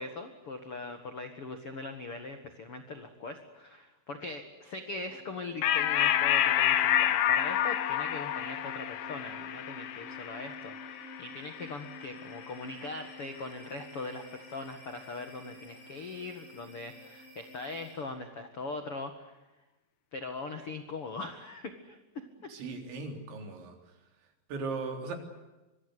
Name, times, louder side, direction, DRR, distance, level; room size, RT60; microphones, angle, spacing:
voice 1, 0.0-19.4 20.1-22.3, left 3 dB, 60° left, 7 dB, 1.4 m, -41 dB
sound 1, 4.7-18.3, left 1 dB, 45° right, 7.4 m, -50 dB
sound 2, 5.6-12.5, left 11 dB, 85° left, 1.8 m, -29 dB
voice 2, 22.5-23.7 24.5-25.2, right 4 dB, 70° right, 5 dB, 5.9 m, -37 dB
25.0 x 24.0 x 8.1 m, 1.1 s
omnidirectional pair, 5.6 m